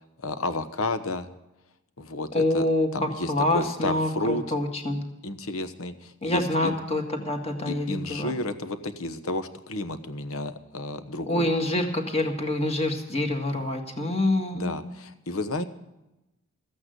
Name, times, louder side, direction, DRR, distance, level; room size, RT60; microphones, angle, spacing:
voice 1, 0.2-1.3 2.0-2.7 2.9-4.4 5.2-6.7 7.7-11.5 14.5-15.6, left 2 dB, 75° left, 11 dB, 1.1 m, -31 dB
voice 2, 2.3-5.0 6.2-8.3 11.3-14.8, left 1 dB, 30° left, 3 dB, 1.8 m, -26 dB
14.0 x 8.8 x 7.9 m, 0.96 s
head